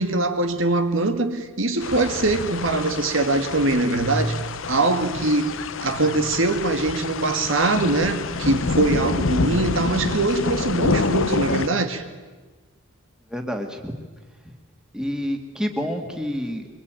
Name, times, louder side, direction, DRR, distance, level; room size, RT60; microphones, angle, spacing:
voice 1, 0.0-4.3 4.7-5.6 5.8-12.0, right 2 dB, 65° right, 1.9 m, -22 dB
sound 1, 1.8-11.7, left 3 dB, 65° left, 0.9 m, -27 dB
voice 2, 13.3-13.9 14.9-16.7, equal, 5° right, 2.3 m, -28 dB
24.5 x 22.5 x 9.1 m
head